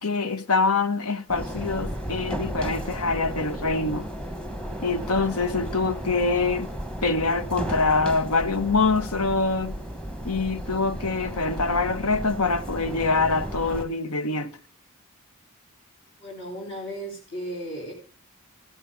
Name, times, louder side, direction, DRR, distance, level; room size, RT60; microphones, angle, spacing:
voice 1, 0.0-4.1 4.8-6.7 7.0-9.8 10.2-14.5, left 3 dB, 85° left, 1.1 m, -25 dB
sound 1, 1.3-13.8, equal, 5° left, 1.1 m, -34 dB
voice 2, 16.2-17.9, equal, 55° left, 3.6 m, -35 dB
14.5 x 12.5 x 3.6 m
head